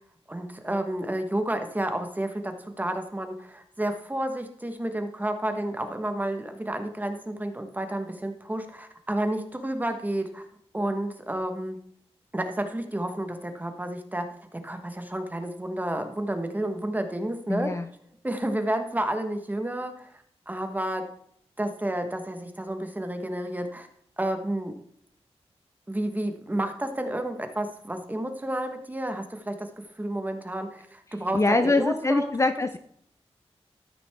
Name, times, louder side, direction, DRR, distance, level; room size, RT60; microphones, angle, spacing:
voice 1, 0.3-10.4 10.7-11.8 12.3-14.3 14.5-17.7 18.2-21.1 21.6-23.9 24.2-24.7 25.9-32.3, right 1 dB, 15° right, 6 dB, 1.2 m, -30 dB
voice 2, 17.5-17.9 31.3-32.8, left 3 dB, 25° left, 9 dB, 0.5 m, -24 dB
13.0 x 6.0 x 3.5 m, 0.67 s
wide cardioid pair, 85°, 11 cm